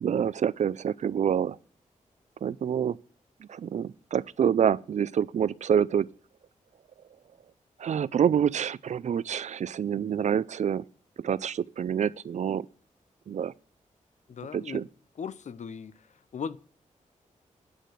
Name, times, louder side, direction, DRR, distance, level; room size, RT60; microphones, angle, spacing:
voice 1, 0.0-1.6 2.4-3.0 3.4-6.1 7.8-10.8 11.2-12.7 13.3-13.5 14.5-14.9, right 8 dB, 60° right, 0.4 m, -27 dB
voice 2, 14.3-14.8 15.2-15.9 16.3-16.6, left 6 dB, 60° left, 0.5 m, -37 dB
9.0 x 4.8 x 7.6 m
cardioid pair, 70°, 14 cm